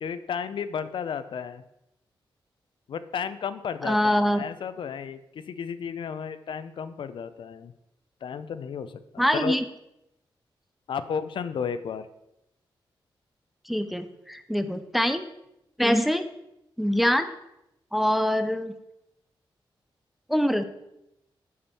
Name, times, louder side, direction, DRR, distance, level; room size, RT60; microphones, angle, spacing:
voice 1, 0.0-1.6 2.9-7.7 8.2-9.6 10.9-12.1, left 7 dB, 70° left, 13 dB, 0.5 m, -33 dB
voice 2, 3.8-4.4 9.2-9.6 13.7-15.2 15.8-16.2 16.8-17.3 17.9-18.7 20.3-20.6, equal, ahead, 9 dB, 0.4 m, -24 dB
8.5 x 7.1 x 4.3 m, 0.86 s
wide cardioid pair, 175°, 9 cm